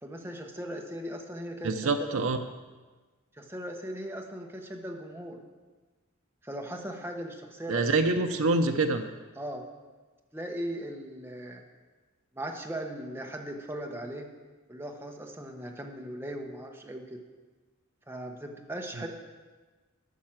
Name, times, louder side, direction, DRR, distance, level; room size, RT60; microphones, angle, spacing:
voice 1, 0.0-2.1 3.3-5.4 6.4-8.4 9.4-9.6 10.3-11.6 12.3-14.3 14.7-17.2 18.1-19.1, right 1 dB, 10° right, 2 dB, 1.0 m, -38 dB
voice 2, 1.6-2.4 7.7-9.0 19.0-19.1, right 3 dB, 70° right, 6 dB, 0.6 m, -26 dB
13.0 x 6.5 x 6.0 m, 1.3 s
head